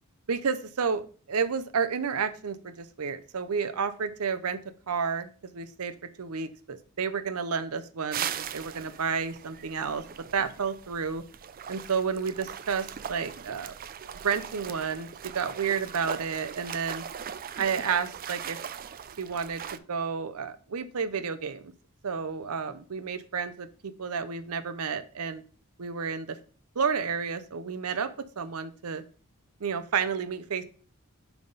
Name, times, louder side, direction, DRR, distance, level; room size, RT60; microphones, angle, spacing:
voice 1, 0.3-4.6 4.9-5.9 6.2-10.0 10.3-11.2 11.7-13.7 14.2-15.1 15.3-17.0 17.6-18.6 19.2-21.7 22.0-25.4 25.8-26.4 26.8-28.1 28.4-29.0 29.6-30.6, right 6 dB, 75° right, 11 dB, 0.7 m, -31 dB
sound 1, 8.1-19.8, right 8 dB, 40° right, 0.4 m, -39 dB
10.5 x 3.5 x 4.0 m, 0.40 s
head